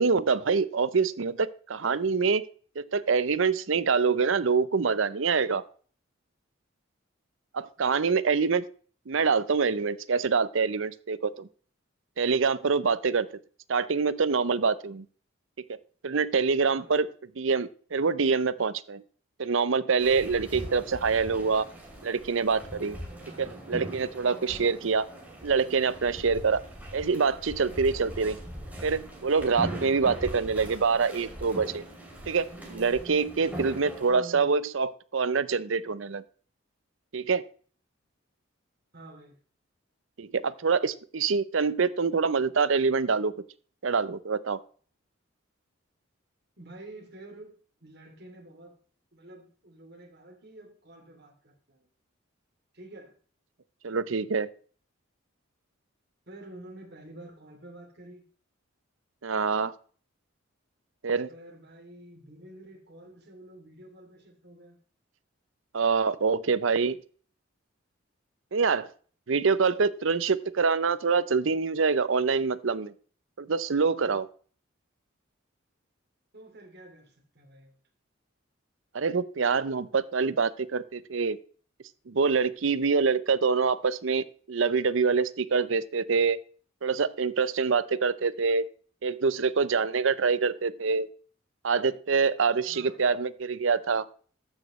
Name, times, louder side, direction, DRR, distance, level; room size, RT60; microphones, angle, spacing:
voice 1, 0.0-2.5 2.8-5.6 7.5-8.6 9.1-11.5 12.2-13.3 13.7-15.0 15.7-15.8 16.0-17.1 17.4-19.0 19.4-21.7 22.0-23.0 23.4-25.1 25.4-26.6 26.9-28.4 28.8-31.8 32.3-36.2 37.1-37.4 40.2-43.3 43.8-44.6 53.8-54.5 59.2-59.7 61.0-61.3 65.7-67.0 68.5-68.9 69.3-72.9 73.4-74.3 78.9-81.4 82.1-86.4 86.8-88.7 89.0-91.1 91.6-94.0, right 5 dB, 70° right, 16 dB, 0.6 m, -25 dB
voice 2, 7.8-8.3 16.7-17.0 20.6-21.0 23.2-23.6 34.1-34.5 38.9-39.4 46.6-48.8 49.1-51.9 52.7-53.2 56.3-58.2 61.3-64.8 76.3-77.8 92.7-93.1, right 1 dB, 50° right, 1 dB, 2.8 m, -49 dB
sound 1, 20.0-34.1, right 1 dB, 10° right, 2.6 m, -41 dB
13.5 x 6.3 x 3.1 m, 0.43 s
head